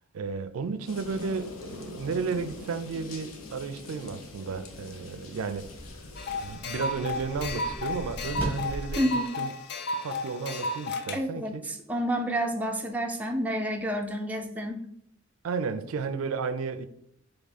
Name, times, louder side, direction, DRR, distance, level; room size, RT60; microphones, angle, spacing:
voice 1, 0.1-5.7 6.4-9.5 10.0-11.7 15.4-16.9, right 5 dB, 85° right, 0.4 m, -33 dB
sound 1, 0.9-6.6, left 3 dB, 90° left, 0.7 m, -44 dB
sound 2, 5.6-9.0, right 1 dB, 10° left, 1.6 m, -38 dB
sound 3, 6.2-11.2, left 2 dB, 55° left, 0.4 m, -33 dB
voice 2, 11.1-11.5 11.9-14.8, equal, 5° right, 0.4 m, -29 dB
3.5 x 3.3 x 4.1 m
head